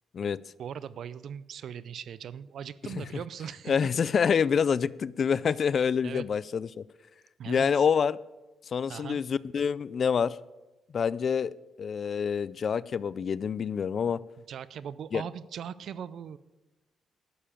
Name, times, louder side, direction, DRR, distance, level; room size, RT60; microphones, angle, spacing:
voice 1, 0.6-3.9 5.8-6.2 7.4-7.9 8.9-9.2 14.5-16.4, right 8 dB, 65° right, 17 dB, 0.5 m, -40 dB
voice 2, 3.7-6.8 7.5-8.2 8.7-10.4 10.9-14.2 15.1-15.2, left 6 dB, 50° left, 19 dB, 0.4 m, -27 dB
12.0 x 7.0 x 8.8 m, 1.1 s
cardioid pair, 90°, 0 cm